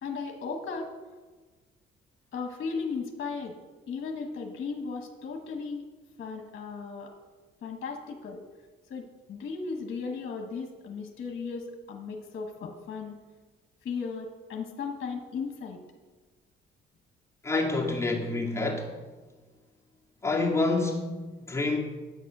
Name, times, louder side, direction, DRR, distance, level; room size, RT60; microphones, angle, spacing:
voice 1, 0.0-0.9 2.3-3.6 3.9-5.9 6.2-7.1 7.6-8.4 8.9-13.2 13.8-15.8, left 5 dB, 55° left, 3 dB, 1.3 m, -36 dB
voice 2, 17.4-19.0 20.2-21.8, left 3 dB, 15° left, -2 dB, 2.1 m, -28 dB
9.1 x 8.4 x 6.1 m, 1.3 s
cardioid pair, 90°, 20 cm